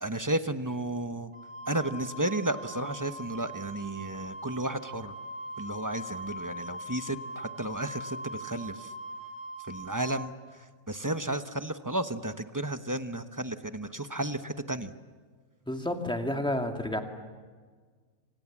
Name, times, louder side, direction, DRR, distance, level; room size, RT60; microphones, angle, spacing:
voice 1, 0.0-1.3 1.7-5.1 5.6-8.9 9.7-14.9, right 1 dB, 15° right, 9 dB, 0.9 m, -33 dB
Wind instrument woodwind instrument, 1.3-10.3, right 1 dB, 55° right, 3.1 m, -41 dB
voice 2, 15.7-17.0, left 1 dB, 5° left, 4 dB, 2.2 m, -30 dB
29.0 x 27.0 x 7.4 m, 1.6 s
omnidirectional pair, 1.4 m